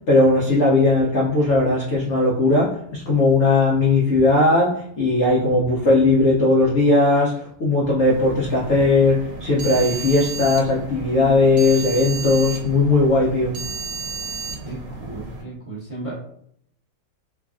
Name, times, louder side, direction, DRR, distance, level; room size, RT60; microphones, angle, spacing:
voice 1, 0.1-13.5, left 2 dB, 80° left, -4 dB, 0.6 m, -18 dB
sound 1, 8.1-15.4, right 4 dB, 85° right, 1.3 m, -33 dB
voice 2, 14.6-16.1, right 2 dB, 30° right, -8 dB, 0.6 m, -35 dB
3.2 x 2.3 x 2.4 m, 0.68 s
omnidirectional pair, 2.0 m